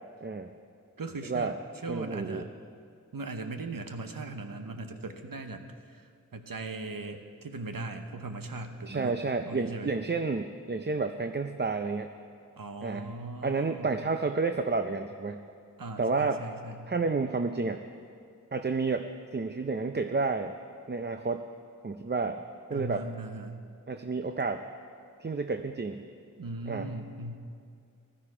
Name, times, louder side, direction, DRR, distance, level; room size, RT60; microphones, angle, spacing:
voice 1, 1.0-1.5 1.8-2.5 3.1-9.1 9.5-9.9 12.6-14.1 15.8-16.9 22.7-23.6 26.4-27.4, right 2 dB, 90° right, 6 dB, 1.0 m, -39 dB
voice 2, 1.9-2.4 8.9-12.1 12.8-13.1 13.4-15.4 16.0-16.4 16.9-17.8 18.5-19.0 19.3-20.5 20.9-21.4 21.8-22.4 22.7-23.0 23.9-24.6 25.2-26.0 26.7-26.9, right 4 dB, 30° right, 6 dB, 0.6 m, -30 dB
16.0 x 12.0 x 4.9 m, 2.3 s
wide cardioid pair, 40°, 33 cm